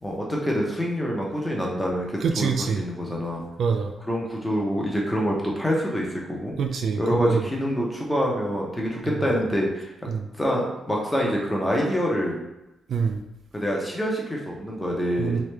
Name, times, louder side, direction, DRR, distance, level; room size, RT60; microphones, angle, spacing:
voice 1, 0.0-3.4 4.0-6.5 7.0-9.9 10.4-12.4 13.5-15.4, equal, 5° left, -2 dB, 0.7 m, -26 dB
voice 2, 2.2-2.8 3.6-3.9 6.6-7.5 9.2-9.3 10.1-10.3 12.9-13.2 15.2-15.4, right 5 dB, 55° right, 5 dB, 0.3 m, -25 dB
3.3 x 3.2 x 3.3 m, 0.96 s
wide cardioid pair, 175°, 0 cm